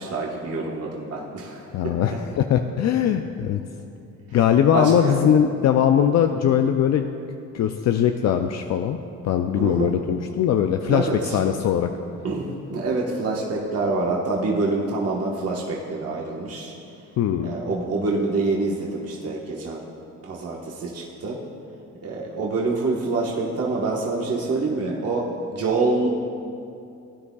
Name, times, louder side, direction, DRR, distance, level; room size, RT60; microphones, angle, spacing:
voice 1, 0.0-1.9 4.3-4.4 4.7-5.2 9.6-9.9 10.9-11.4 12.2-16.7 17.4-19.8 20.2-21.4 22.0-26.1, right 3 dB, 55° right, -3 dB, 1.4 m, -26 dB
voice 2, 1.7-3.6 4.3-7.1 7.5-9.0 9.2-11.1 11.3-11.9 17.2-17.5, left 9 dB, 60° left, 6 dB, 0.5 m, -20 dB
17.0 x 9.8 x 2.4 m, 2.6 s
cardioid pair, 90°, 30 cm